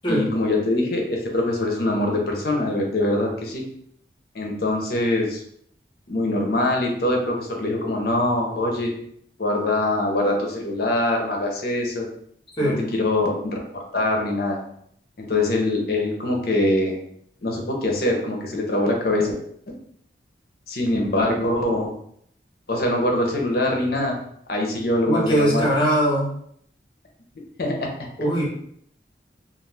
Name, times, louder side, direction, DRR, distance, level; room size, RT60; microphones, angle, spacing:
voice 1, 0.1-3.6 4.3-5.4 6.1-8.9 9.4-12.1 12.6-14.6 15.2-16.9 17.4-19.3 20.7-21.9 22.7-24.2 24.5-25.6 27.6-27.9, left 1 dB, 55° left, 1 dB, 0.6 m, -23 dB
voice 2, 25.0-26.3 28.2-28.4, right 1 dB, 25° left, -4 dB, 0.8 m, -21 dB
2.3 x 2.3 x 3.3 m, 0.67 s
head